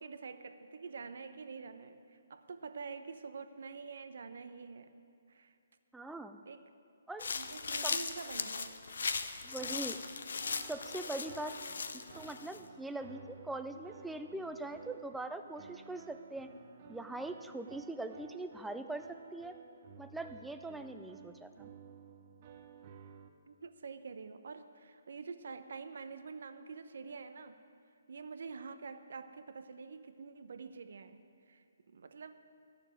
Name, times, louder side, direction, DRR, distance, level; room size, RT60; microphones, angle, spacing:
voice 1, 0.0-4.9 5.3-5.5 6.5-6.7 7.3-8.8 23.5-27.6 28.1-31.2 31.5-32.4, right 5 dB, 70° right, 10 dB, 0.8 m, -47 dB
voice 2, 5.9-6.4 7.1-7.3 7.8-8.0 9.4-10.0 10.7-11.5 12.1-16.5 16.9-19.0 19.3-19.6 20.0-21.7, right 2 dB, 5° right, 7 dB, 0.4 m, -42 dB
sound 1, 7.2-12.6, left 5 dB, 75° left, 0.7 m, -38 dB
sound 2, 9.6-23.3, right 6 dB, 40° right, 0.7 m, -54 dB
11.5 x 7.0 x 8.7 m, 2.5 s
hypercardioid pair, 155°, 0 cm